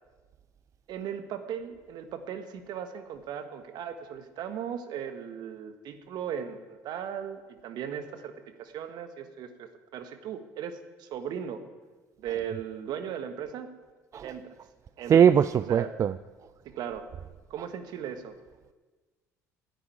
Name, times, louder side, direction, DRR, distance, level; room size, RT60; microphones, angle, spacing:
voice 1, 0.9-11.6 12.2-13.7 14.2-14.5 15.0-15.2 15.6-15.9 16.6-17.0 17.5-18.4, right 8 dB, 65° right, 9 dB, 1.4 m, -37 dB
voice 2, 15.1-16.2 17.6-17.7, right 8 dB, 40° right, 15 dB, 0.4 m, -21 dB
9.8 x 9.5 x 9.3 m, 1.3 s
hypercardioid pair, 70°, 8 cm